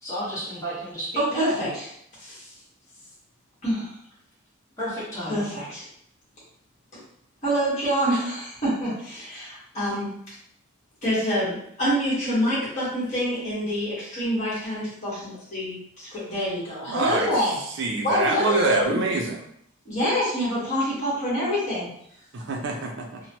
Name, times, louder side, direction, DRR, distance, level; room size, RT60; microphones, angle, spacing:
voice 1, 0.0-1.6 4.8-5.6, equal, 15° left, -9 dB, 1.2 m, -32 dB
voice 2, 1.1-1.9 2.2-2.5 3.6-3.9 5.3-5.9 6.9-7.0 7.4-10.1 11.0-17.6 18.0-19.0 19.8-21.9, equal, 35° left, -9 dB, 1.2 m, -26 dB
voice 3, 16.9-17.3 17.8-19.4 22.3-23.2, right 2 dB, 55° right, 2 dB, 0.4 m, -25 dB
2.9 x 2.1 x 2.9 m, 0.69 s
head